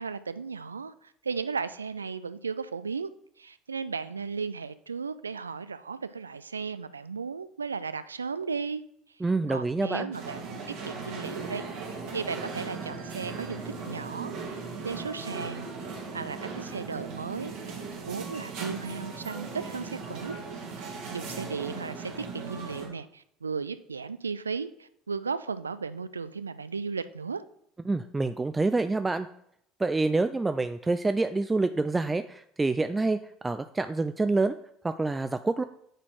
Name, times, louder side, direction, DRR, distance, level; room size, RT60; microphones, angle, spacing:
voice 1, 0.0-3.1 3.4-8.8 9.5-14.6 14.8-15.7 16.1-17.5 18.1-20.4 20.8-27.4, right 5 dB, 90° right, 14 dB, 0.3 m, -35 dB
voice 2, 9.2-10.1 27.9-29.3 29.8-33.2 33.4-34.6 34.8-35.6, right 3 dB, 15° right, 9 dB, 0.4 m, -27 dB
sound 1, 10.1-22.9, right 4 dB, 65° right, 2.0 m, -38 dB
8.9 x 4.2 x 4.7 m, 0.70 s
hypercardioid pair, 65°, 0 cm